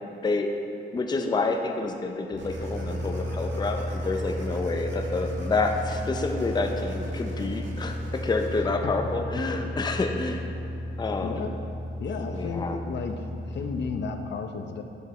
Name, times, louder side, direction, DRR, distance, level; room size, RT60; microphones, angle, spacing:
voice 1, 0.9-10.5 11.0-11.4 12.3-12.8, left 3 dB, 20° left, 4 dB, 0.5 m, -28 dB
sound 1, 2.3-13.9, left 1 dB, 80° left, 1.4 m, -34 dB
sound 2, 2.4-8.6, right 1 dB, 65° right, 1.3 m, -44 dB
voice 2, 11.2-11.6 12.0-14.8, left 5 dB, 60° left, 5 dB, 0.7 m, -33 dB
9.2 x 6.6 x 4.3 m, 2.7 s
cardioid pair, 115°, 20 cm